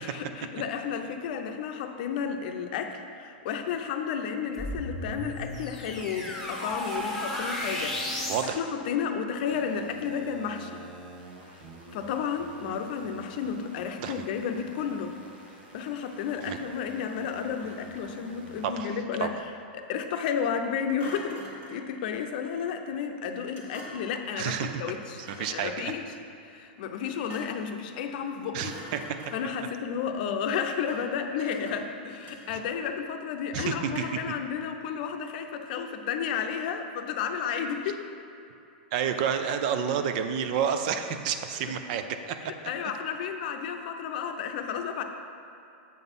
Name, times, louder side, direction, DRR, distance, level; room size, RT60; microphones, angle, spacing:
voice 1, 0.0-10.8 11.9-15.1 15.7-19.3 19.7-21.4 21.7-26.0 26.5-28.7 29.3-38.0 42.7-45.0, left 7 dB, 60° left, 5 dB, 0.6 m, -32 dB
sound 1, 4.5-8.5, left 1 dB, 5° left, 1.7 m, -34 dB
voice 2, 8.3-8.6 14.0-14.3 16.4-16.6 18.6-19.3 24.4-24.8 25.2-25.9 28.5-29.2 33.5-33.9 38.9-42.5, right 8 dB, 55° right, 8 dB, 0.5 m, -30 dB
sound 2, 9.5-18.7, right 2 dB, 85° right, 1.5 m, -48 dB
Thump thud, 17.4-18.2 21.0-21.9 23.5-24.2 25.1-25.6 27.0-27.7 28.1-28.3 28.6-29.6 30.8-31.2 31.5-32.9 33.9-34.3, equal, 30° right, 1.3 m, -45 dB
7.5 x 4.0 x 5.4 m, 2.8 s
hypercardioid pair, 135°, 6 cm